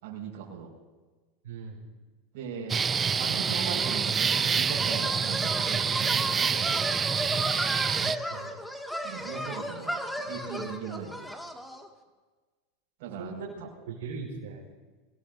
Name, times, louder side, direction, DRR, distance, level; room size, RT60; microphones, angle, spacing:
voice 1, 0.0-0.7 2.3-2.9 3.2-7.2 9.0-11.3 13.0-13.7, right 6 dB, 70° right, 1 dB, 5.5 m, -39 dB
voice 2, 1.4-1.9 8.0-8.5 13.2-13.5 13.9-14.6, right 5 dB, 85° right, -3 dB, 4.8 m, -39 dB
sound 1, 2.7-8.2, right 6 dB, 20° right, 0.5 m, -27 dB
sound 2, 3.8-11.9, equal, 5° left, 2.0 m, -35 dB
25.5 x 20.0 x 2.7 m, 1.3 s
supercardioid pair, 120°, 0 cm